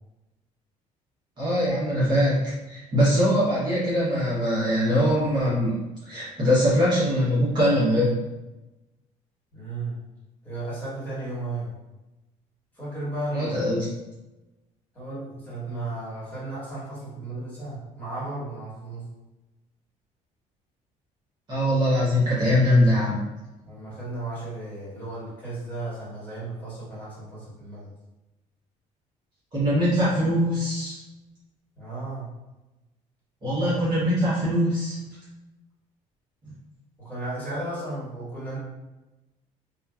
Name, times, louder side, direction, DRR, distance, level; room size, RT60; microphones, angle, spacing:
voice 1, 1.4-8.2 13.3-13.8 21.5-23.2 29.5-31.0 33.4-35.0, equal, 35° right, -8 dB, 1.0 m, -22 dB
voice 2, 9.5-10.0 10.4-11.7 12.7-13.6 14.9-19.1 23.6-27.9 31.8-32.3 33.7-33.8 37.0-38.6, right 2 dB, 10° left, -10 dB, 1.5 m, -34 dB
2.9 x 2.5 x 2.3 m, 1.0 s
cardioid pair, 150°, 14 cm